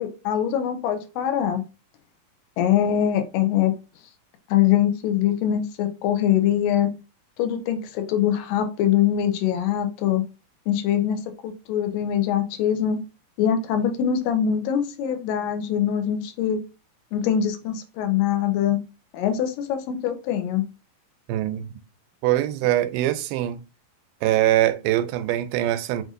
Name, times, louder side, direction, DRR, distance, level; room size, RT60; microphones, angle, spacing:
voice 1, 0.0-1.6 2.6-3.7 4.5-6.9 7.4-10.2 10.7-13.0 13.4-16.6 17.1-18.8 19.1-20.6, left 10 dB, 80° left, 2.1 m, -23 dB
voice 2, 21.3-21.7 22.2-23.6 24.2-26.0, right 14 dB, 90° right, 2.4 m, -23 dB
6.1 x 2.6 x 2.5 m
omnidirectional pair, 4.2 m